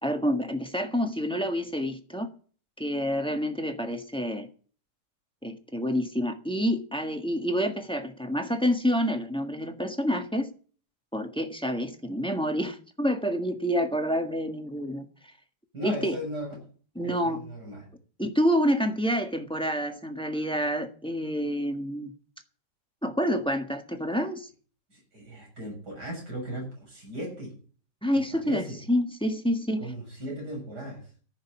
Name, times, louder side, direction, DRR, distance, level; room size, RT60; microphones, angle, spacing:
voice 1, 0.0-2.3 2.8-4.5 5.4-10.5 11.1-15.0 15.8-16.1 16.9-17.4 18.2-22.1 23.0-24.5 28.0-29.9, equal, 5° left, 5 dB, 1.4 m, -28 dB
voice 2, 15.7-16.5 17.0-17.9 24.9-27.6 28.1-28.8 29.8-31.1, right 1 dB, 70° right, -1 dB, 7.9 m, -37 dB
14.5 x 6.8 x 9.7 m, 0.42 s
omnidirectional pair, 1.8 m